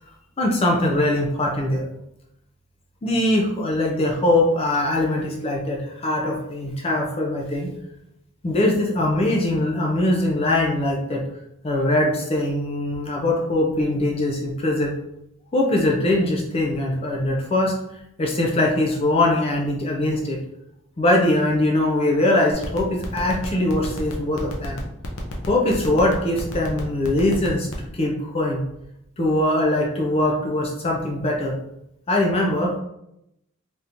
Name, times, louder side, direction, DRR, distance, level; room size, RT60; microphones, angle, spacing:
voice 1, 0.4-1.8 3.0-7.7 8.4-11.2 11.6-14.9 15.5-20.4 21.0-24.8 25.5-28.6 29.2-31.5 32.1-32.8, left 1 dB, 25° left, 0 dB, 0.4 m, -22 dB
sound 1, 22.5-27.9, left 3 dB, 70° left, 0.6 m, -33 dB
3.5 x 2.8 x 2.5 m, 0.82 s
head